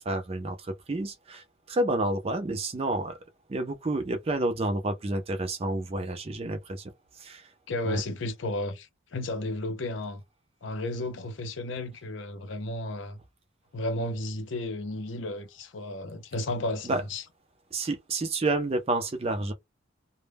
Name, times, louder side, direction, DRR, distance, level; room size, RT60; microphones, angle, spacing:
voice 1, 0.0-3.2 3.5-7.5 7.9-8.0 16.8-17.0 17.7-19.5, right 2 dB, 30° right, 0.4 m, -30 dB
voice 2, 7.7-10.2 10.6-13.2 13.7-17.2, left 1 dB, 65° left, 0.5 m, -33 dB
2.1 x 2.0 x 3.2 m
head